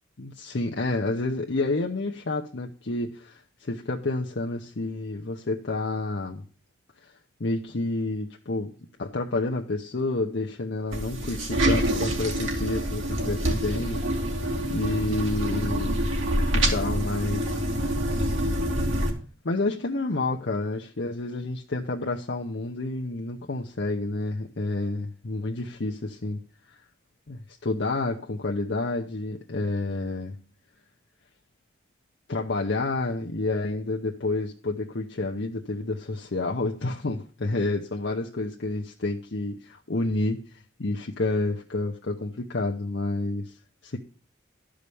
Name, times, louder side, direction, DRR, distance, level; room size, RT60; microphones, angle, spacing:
voice 1, 0.2-6.4 7.0-7.1 7.4-8.7 9.0-14.0 14.7-16.1 16.5-17.6 19.4-26.4 26.7-26.8 27.3-30.4 32.3-43.6 43.8-44.0, left 2 dB, 60° left, 0.8 m, -29 dB
sound 1, 10.9-19.1, right 1 dB, 85° right, 2.6 m, -26 dB
12.5 x 5.0 x 6.9 m
head